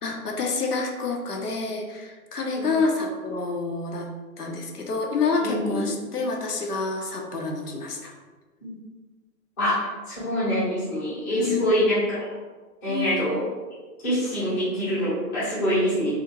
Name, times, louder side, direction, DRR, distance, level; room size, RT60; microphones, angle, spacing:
voice 1, 0.0-4.1 4.4-8.1 11.3-11.6 12.9-13.2, left 4 dB, 85° left, 1 dB, 0.6 m, -28 dB
voice 2, 5.4-5.9 8.6-8.7 9.6-12.3 12.8-13.4 14.0-16.1, equal, 10° left, -12 dB, 0.7 m, -25 dB
2.4 x 2.4 x 2.9 m, 1.3 s
figure-of-eight pair, 130°, 45 cm